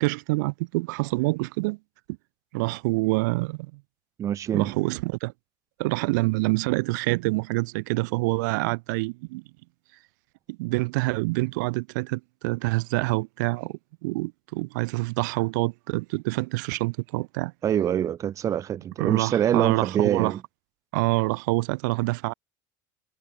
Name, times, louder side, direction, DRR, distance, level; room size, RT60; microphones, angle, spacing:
voice 1, 0.0-1.8 2.5-3.8 4.5-5.3 5.8-9.4 10.5-13.7 14.0-17.5 19.0-20.3 20.9-22.3, right 25 dB, 85° right, 1.0 m, -26 dB
voice 2, 4.2-4.7 17.6-20.4, right 10 dB, 35° right, 0.6 m, -25 dB
supercardioid pair, 120°, 10 cm